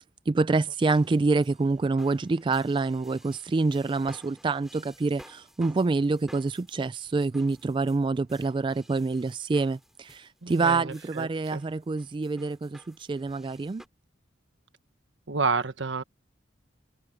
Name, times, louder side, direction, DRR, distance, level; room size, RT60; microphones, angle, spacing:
voice 1, 0.0-13.8, right 3 dB, 25° right, 0.3 m, -27 dB
sound 1, 0.8-13.9, equal, ahead, 3.4 m, -53 dB
voice 2, 10.4-11.6 15.3-16.0, right 4 dB, 85° right, 1.2 m, -30 dB
head